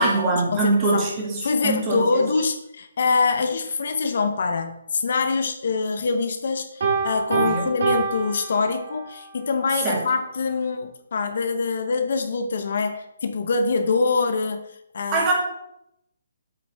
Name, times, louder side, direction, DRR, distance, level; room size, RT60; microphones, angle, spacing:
voice 1, 0.0-2.2 7.3-7.6 9.8-10.0 15.1-15.3, right 3 dB, 20° right, -2 dB, 2.1 m, -23 dB
voice 2, 0.5-1.1 1.4-15.3, left 4 dB, 60° left, 7 dB, 0.8 m, -24 dB
Piano, 6.8-9.2, right 4 dB, 60° right, 3.0 m, -26 dB
8.1 x 7.2 x 3.4 m, 0.80 s
hypercardioid pair, 165°, 0 cm